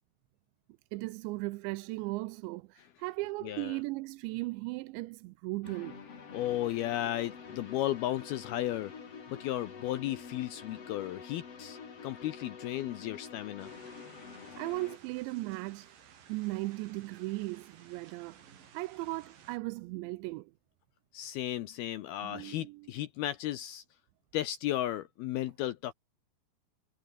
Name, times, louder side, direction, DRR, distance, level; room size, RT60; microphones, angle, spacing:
voice 1, 0.9-6.0 14.6-15.9 16.3-18.4 18.7-20.5 22.2-22.9, right 22 dB, 80° right, 2.7 m, -37 dB
voice 2, 3.4-3.8 6.3-8.9 9.3-13.7 21.1-23.8 24.3-25.9, left 13 dB, 75° left, 2.4 m, -34 dB
sound 1, 5.6-15.0, left 6 dB, 35° left, 3.5 m, -47 dB
sound 2, 13.6-19.6, right 8 dB, 55° right, 4.1 m, -57 dB
omnidirectional pair, 5.4 m